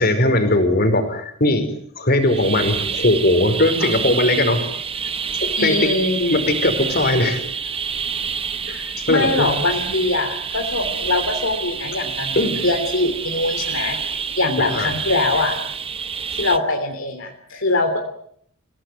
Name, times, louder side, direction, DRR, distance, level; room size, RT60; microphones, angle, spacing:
voice 1, 0.0-4.7 5.3-5.7 6.3-7.4 8.7-8.8 9.1-9.5 12.3-12.7 14.6-14.9, left 1 dB, 45° left, 8 dB, 5.0 m, -19 dB
sound 1, 2.2-16.6, right 6 dB, 25° right, 1.2 m, -27 dB
voice 2, 5.6-6.4 8.7-15.6 16.3-18.0, left 2 dB, 65° left, 3 dB, 3.4 m, -23 dB
29.0 x 18.0 x 9.5 m, 0.67 s
head